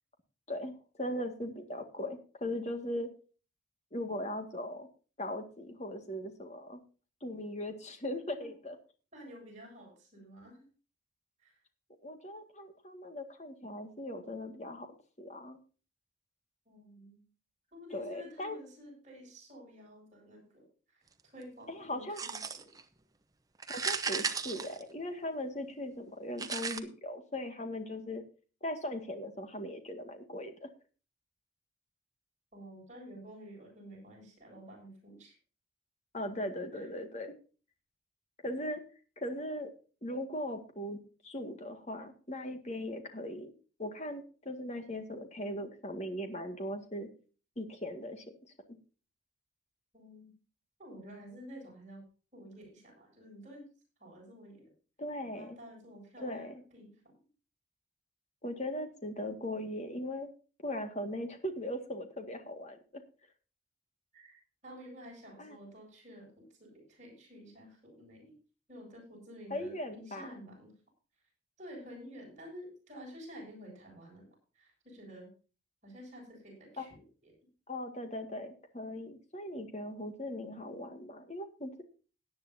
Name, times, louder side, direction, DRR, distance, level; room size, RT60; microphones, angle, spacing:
voice 1, 0.5-3.1 3.9-4.9 5.2-6.8 7.2-8.8 12.0-14.9 15.2-15.6 17.9-18.6 21.7-22.2 23.7-28.2 28.6-30.7 36.1-37.3 38.4-38.8 39.2-39.7 40.0-43.5 43.8-47.1 47.6-48.2 55.0-55.6 56.2-56.6 58.4-60.3 60.6-63.0 65.4-65.6 69.5-70.3 76.8-76.9 77.7-81.8, left 1 dB, 35° left, 6 dB, 1.9 m, -39 dB
voice 2, 9.1-10.7 11.4-11.6 16.7-17.2 17.7-22.7 32.5-35.3 36.8-36.9 49.9-50.3 50.8-52.0 52.3-53.7 54.0-54.7 55.3-57.2 64.1-68.4 68.7-70.7 71.6-74.3 74.5-75.3 75.8-77.3, equal, 35° right, -1 dB, 7.6 m, -51 dB
sound 1, 22.2-22.8 23.6-25.3 26.4-26.8, right 5 dB, 20° right, 0.8 m, -35 dB
17.5 x 10.0 x 2.8 m, 0.37 s
head